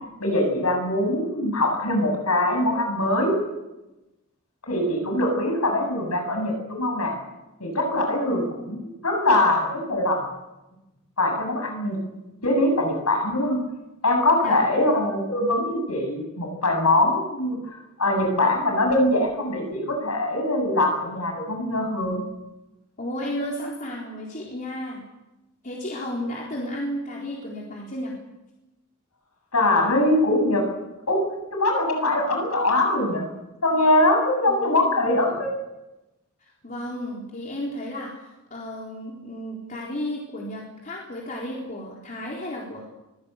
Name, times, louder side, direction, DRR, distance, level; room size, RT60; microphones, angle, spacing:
voice 1, 0.2-3.3 4.6-7.2 7.6-8.4 8.7-8.8 9.0-10.2 11.2-12.0 12.4-13.6 14.0-17.6 18.0-22.2 29.5-30.6 31.1-31.2 31.5-33.3 33.6-35.5, left 1 dB, 85° left, 3 dB, 7.9 m, -22 dB
voice 2, 8.3-8.7 14.4-14.6 23.0-25.0 25.6-28.1 34.5-35.0 36.4-38.1 38.5-42.8, left 1 dB, 40° left, -3 dB, 4.1 m, -33 dB
23.5 x 17.0 x 8.3 m, 1.0 s
head